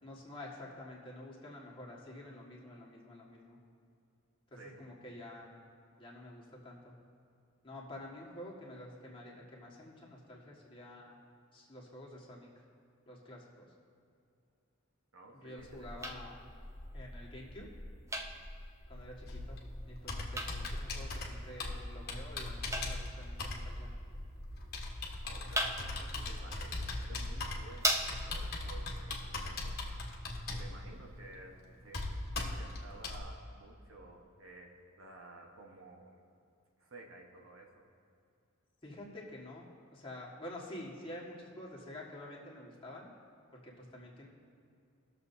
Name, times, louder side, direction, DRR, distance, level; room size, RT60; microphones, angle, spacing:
voice 1, 0.0-3.6 4.5-5.5 6.0-6.9 7.6-11.2 11.5-12.5 13.1-13.7 15.4-16.4 16.9-17.7 18.9-23.9 38.8-43.1 43.6-44.3, left 1 dB, 25° left, -4 dB, 1.7 m, -49 dB
voice 2, 4.6-5.0 15.1-16.3 25.2-29.8 30.5-36.2 36.8-37.9, right 2 dB, 75° right, 0 dB, 1.3 m, -54 dB
sound 1, 15.6-28.6, right 1 dB, 15° right, 0.7 m, -41 dB
Computer keyboard, 19.2-33.2, left 2 dB, 50° left, 1.3 m, -40 dB
19.0 x 6.8 x 2.7 m, 2.4 s
head